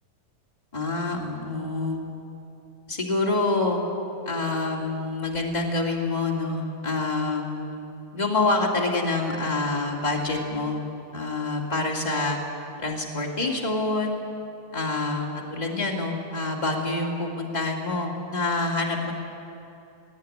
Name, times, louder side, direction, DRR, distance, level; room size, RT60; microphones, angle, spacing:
voice 1, 0.7-2.0 2.9-3.8 4.2-7.8 8.1-10.8 11.1-12.4 12.8-14.2 14.7-19.1, left 2 dB, 25° left, -1 dB, 0.9 m, -26 dB
18.5 x 18.0 x 9.4 m, 2.7 s
omnidirectional pair, 4.6 m